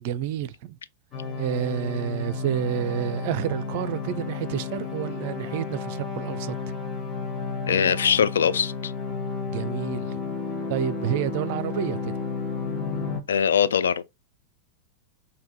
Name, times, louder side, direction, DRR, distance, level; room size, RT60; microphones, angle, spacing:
voice 1, 0.0-0.8 1.4-6.6 9.5-10.2 10.7-12.1, right 10 dB, 50° right, 0.4 m, -29 dB
sound 1, 1.1-13.2, left 4 dB, 25° left, 1.1 m, -32 dB
voice 2, 7.7-8.9 13.3-14.0, left 7 dB, 65° left, 0.4 m, -22 dB
3.5 x 2.7 x 4.0 m
figure-of-eight pair, 90°, 0 cm